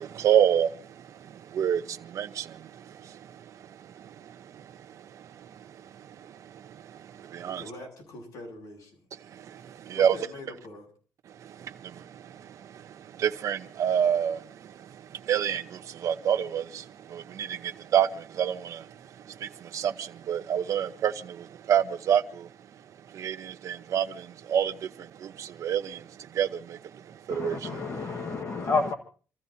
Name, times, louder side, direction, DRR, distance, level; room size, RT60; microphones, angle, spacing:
voice 1, 0.0-3.4 3.8-5.6 5.9-7.6 9.3-10.2 11.4-22.5 23.1-26.1 26.3-27.9, right 9 dB, 55° right, 1.0 m, -29 dB
voice 2, 7.4-9.0 9.9-10.9, left 1 dB, 75° left, 7.7 m, -44 dB
voice 3, 27.3-28.9, left 4 dB, 45° left, 1.7 m, -29 dB
28.5 x 15.0 x 2.9 m
cardioid pair, 140°, 6 cm